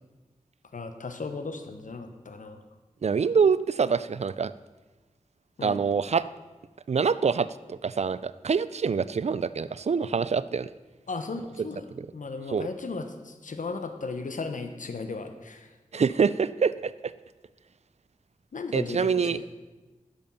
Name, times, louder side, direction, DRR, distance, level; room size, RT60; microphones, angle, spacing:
voice 1, 0.7-2.6 5.6-5.8 11.1-15.7 18.5-19.4, left 4 dB, 75° left, 8 dB, 1.0 m, -36 dB
voice 2, 3.0-4.5 5.6-6.2 6.9-10.7 12.0-12.1 12.5-12.7 15.9-16.9 18.7-19.4, right 6 dB, 55° right, 16 dB, 0.4 m, -25 dB
10.5 x 7.1 x 5.5 m, 1.2 s
cardioid pair, 50°, 13 cm